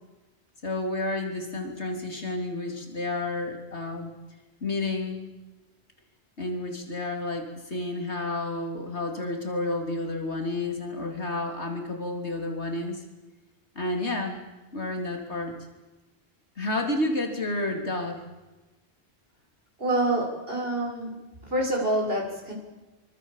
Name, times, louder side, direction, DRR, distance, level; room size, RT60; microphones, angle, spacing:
voice 1, 0.6-4.1 4.6-5.3 6.4-13.0 13.8-14.4 14.7-15.5 16.6-18.2, left 2 dB, 90° left, 3 dB, 3.7 m, -30 dB
voice 2, 19.8-21.1 21.5-22.5, right 1 dB, 60° right, -1 dB, 7.6 m, -26 dB
25.0 x 25.0 x 7.5 m, 1.1 s
omnidirectional pair, 1.1 m